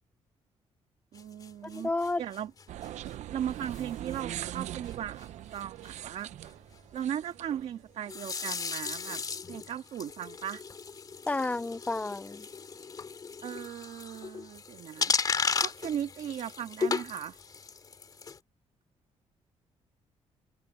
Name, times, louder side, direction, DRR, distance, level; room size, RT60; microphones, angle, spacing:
sound 1, 1.1-3.1 3.6-3.8 4.1-4.3 4.6-4.7 4.9-5.0 5.2-5.3 5.5-5.9 8.1-18.4, left 5 dB, 35° left, 2.5 m, -35 dB
voice 1, 1.1-1.9 2.2-2.5 3.3-6.3 6.9-9.2 9.5-10.6 13.4-15.1 15.6-17.4, right 10 dB, 70° right, 1.8 m, -37 dB
voice 2, 1.7-2.2 11.3-12.4, left 2 dB, 10° left, 0.5 m, -31 dB
sound 2, 2.7-8.1, right 12 dB, 85° right, 0.7 m, -41 dB
cardioid pair, 135°, 12 cm